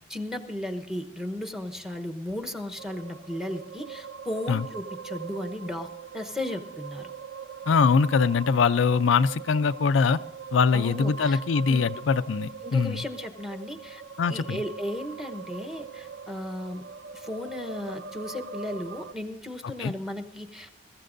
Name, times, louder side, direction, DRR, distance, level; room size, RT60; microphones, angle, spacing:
voice 1, 0.1-7.1 10.7-11.4 11.7-11.8 12.6-14.0 14.3-16.8 17.1-20.7, left 1 dB, 5° right, 5 dB, 1.0 m, -35 dB
sound 1, 2.8-19.1, right 6 dB, 70° right, 0.6 m, -41 dB
voice 2, 7.7-10.2 10.5-13.0 14.2-14.6 19.8-19.9, left 5 dB, 75° left, 11 dB, 0.4 m, -22 dB
22.0 x 14.5 x 2.6 m, 0.85 s
head